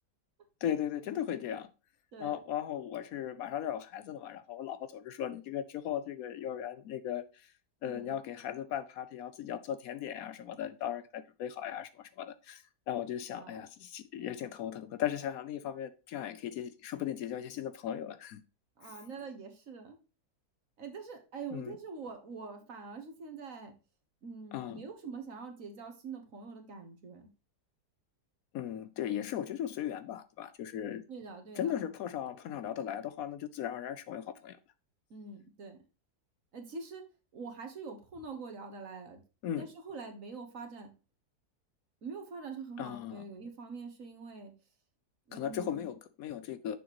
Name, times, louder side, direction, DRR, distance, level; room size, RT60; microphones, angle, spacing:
voice 1, 0.6-1.7 2.2-7.5 7.8-18.4 18.8-19.0 21.5-21.8 24.5-24.8 28.5-31.0 31.5-34.6 39.4-39.6 42.8-43.3 45.3-46.8, left 10 dB, 70° left, 1.0 m, -37 dB
voice 2, 13.3-13.7 18.8-20.0 20.8-23.7 24.2-27.3 31.1-31.8 35.1-35.8 36.5-37.0 37.3-39.2 39.6-40.9 42.0-44.5 45.3-45.9, right 4 dB, 60° right, 1.6 m, -44 dB
6.9 x 6.3 x 3.0 m
omnidirectional pair, 1.7 m